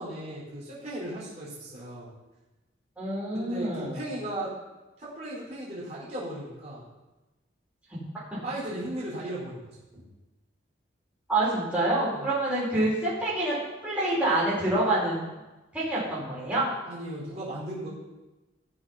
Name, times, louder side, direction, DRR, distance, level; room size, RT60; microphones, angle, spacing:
voice 1, 0.0-2.1 3.3-4.5 5.2-6.9 8.4-9.6 9.9-10.0 12.1-12.3 16.9-17.9, right 1 dB, 35° right, -7 dB, 4.6 m, -36 dB
voice 2, 3.0-4.0 8.3-8.4 11.3-13.6 13.8-15.3 15.7-16.6, right 2 dB, 5° right, -9 dB, 4.7 m, -27 dB
15.5 x 6.5 x 5.9 m, 1.1 s
head